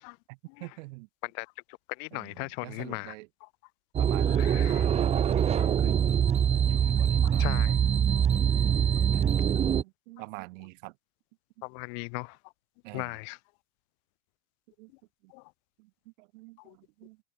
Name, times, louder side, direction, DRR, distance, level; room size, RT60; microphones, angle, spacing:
voice 1, 0.3-1.1 2.1-3.3 4.0-6.1 6.6-8.0 9.1-9.4 9.8-10.9 12.8-13.1 14.8-14.9 15.2-15.3 15.8-17.2, right 24 dB, 60° right, 1.7 m, -45 dB
voice 2, 1.2-3.2 3.4-3.5 4.3-4.9 5.6-5.7 7.2-7.7 9.3-9.4 11.6-12.4 12.9-13.4 14.9-15.0 15.3-15.5 16.6-16.8, left 40 dB or more, 50° left, 0.9 m, -38 dB
sound 1, 3.9-9.8, right 8 dB, 15° right, 0.5 m, -24 dB
hypercardioid pair, 115°, 42 cm